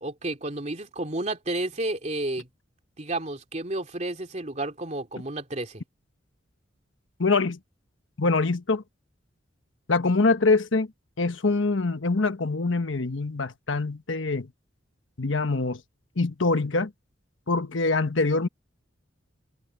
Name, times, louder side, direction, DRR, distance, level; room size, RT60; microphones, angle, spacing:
voice 1, 0.0-2.5 3.0-5.8, right 2 dB, 35° right, 2.8 m, -31 dB
voice 2, 7.2-7.6 8.2-8.8 9.9-10.9 11.2-14.5 15.2-15.8 16.2-16.9 17.5-18.5, left 3 dB, 85° left, 1.2 m, -24 dB
head